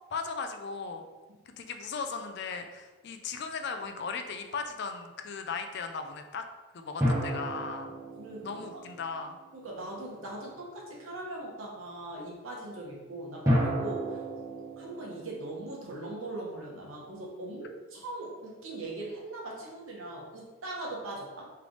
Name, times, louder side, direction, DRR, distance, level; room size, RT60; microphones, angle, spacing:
voice 1, 0.1-1.0 1.5-6.4 6.7-7.9 8.4-9.4, left 5 dB, 50° left, 6 dB, 0.4 m, -37 dB
sound 1, 7.0-9.8 13.5-16.8, equal, 15° right, 1.0 m, -32 dB
voice 2, 8.2-8.8 9.5-14.2 14.8-21.5, right 2 dB, 75° right, -2 dB, 1.0 m, -40 dB
3.3 x 3.3 x 3.8 m, 1.2 s
head